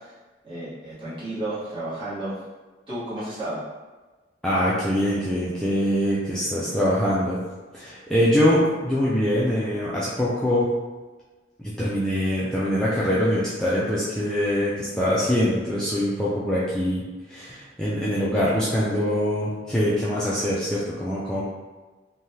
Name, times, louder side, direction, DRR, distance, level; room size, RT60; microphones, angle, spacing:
voice 1, 0.4-2.3 2.9-3.6, right 1 dB, 30° right, -12 dB, 1.4 m, -32 dB
voice 2, 4.4-7.4 7.7-10.7 11.6-17.0 17.3-21.4, equal, 5° left, -9 dB, 0.4 m, -23 dB
3.2 x 2.2 x 2.8 m, 1.3 s
head